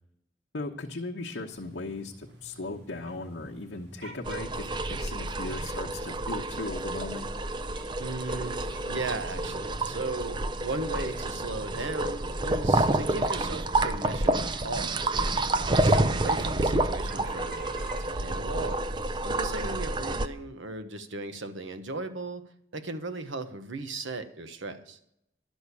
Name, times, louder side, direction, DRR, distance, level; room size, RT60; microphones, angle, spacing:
voice 1, 0.5-4.6 4.9-7.3, left 2 dB, 80° left, -2 dB, 1.0 m, -37 dB
sound 1, 1.5-20.0, right 1 dB, 70° right, 2.6 m, -50 dB
sound 2, 4.2-20.3, right 2 dB, 25° right, 0.4 m, -29 dB
voice 2, 8.0-15.1 15.5-18.8 19.2-22.5 22.7-25.0, right 2 dB, 90° right, 9 dB, 1.1 m, -37 dB
12.0 x 6.3 x 8.3 m, 0.77 s
head